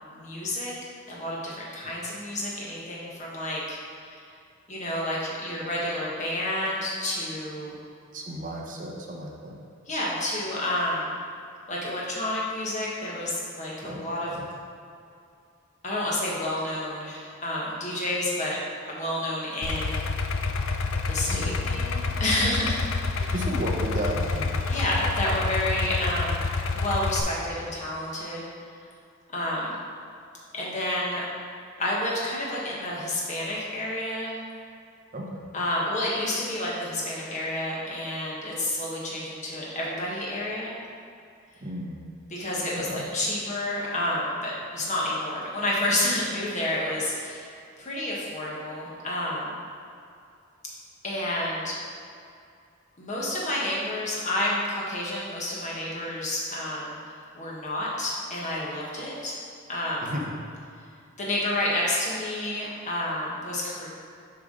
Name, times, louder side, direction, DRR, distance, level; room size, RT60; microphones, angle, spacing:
voice 1, 0.1-0.7 1.1-4.2 4.7-7.8 9.9-11.1 11.7-14.3 15.8-18.6 18.9-20.0 21.1-23.3 24.6-26.4 26.7-28.5 29.3-29.7 30.5-31.2 31.8-34.4 35.5-40.7 42.3-49.6 51.0-51.8 53.0-57.0 57.3-59.4 59.7-60.1 61.2-63.9, left 1 dB, 35° left, -5 dB, 1.3 m, -30 dB
voice 2, 8.1-9.6 13.8-14.0 14.3-14.4 21.2-22.0 23.3-24.6 35.1-35.4 41.6-42.0 42.7-43.0 60.0-60.3, equal, 40° right, -1 dB, 0.7 m, -34 dB
Idling, 19.6-27.2, left 4 dB, 80° left, 0.4 m, -28 dB
7.3 x 4.8 x 3.8 m, 2.4 s
head